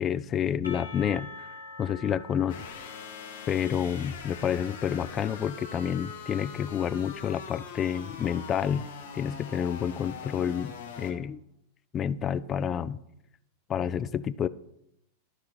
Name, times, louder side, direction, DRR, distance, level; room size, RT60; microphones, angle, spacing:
voice 1, 0.0-1.5 1.8-2.6 3.5-8.9 9.1-11.4 11.9-13.0 13.7-14.5, left 8 dB, 25° left, 17 dB, 0.3 m, -29 dB
Percussion, 0.6-5.5, left 3 dB, 80° left, 1.3 m, -46 dB
sound 1, 2.5-11.1, left 6 dB, 60° left, 1.3 m, -42 dB
11.0 x 5.9 x 4.6 m, 0.80 s
figure-of-eight pair, 90°, 0 cm